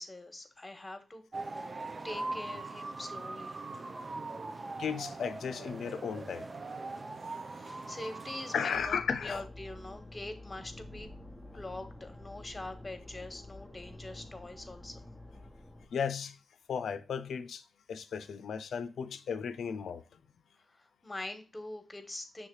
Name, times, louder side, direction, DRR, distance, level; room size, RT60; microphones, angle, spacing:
voice 1, 0.0-1.7 2.0-3.6 7.5-11.1 11.5-15.0 20.7-22.5, left 2 dB, 30° left, 1.4 m, -44 dB
sound 1, 1.3-8.9, right 3 dB, 45° right, 0.6 m, -41 dB
voice 2, 4.8-6.5 7.3-7.4 8.5-9.4 15.9-16.4 16.7-17.6 17.9-20.2, left 7 dB, 80° left, 0.5 m, -35 dB
sound 2, 8.7-15.9, left 1 dB, 5° right, 1.1 m, -49 dB
6.3 x 3.6 x 4.6 m
supercardioid pair, 40°, 0 cm